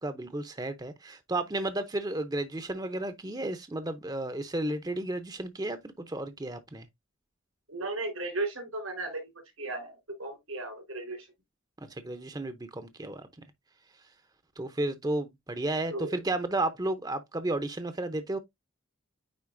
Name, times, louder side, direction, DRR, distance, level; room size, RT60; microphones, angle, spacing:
voice 1, 0.0-6.9 11.9-13.3 14.6-18.4, right 2 dB, 20° right, 0.6 m, -33 dB
voice 2, 7.7-11.3 15.9-16.1, right 2 dB, 90° right, 3.8 m, -36 dB
9.5 x 3.9 x 2.5 m
head